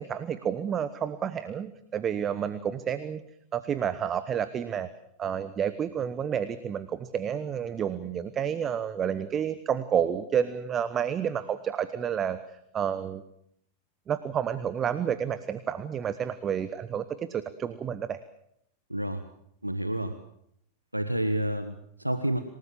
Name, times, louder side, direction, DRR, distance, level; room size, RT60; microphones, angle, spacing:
voice 1, 0.0-3.2 3.5-4.9 5.2-12.4 12.7-13.2 14.1-18.2, right 8 dB, 25° right, 14 dB, 1.1 m, -30 dB
voice 2, 18.9-19.2 19.6-20.1 20.9-22.4, right 1 dB, 85° right, 9 dB, 1.3 m, -29 dB
27.5 x 18.5 x 7.4 m, 0.74 s
figure-of-eight pair, 90°, 0 cm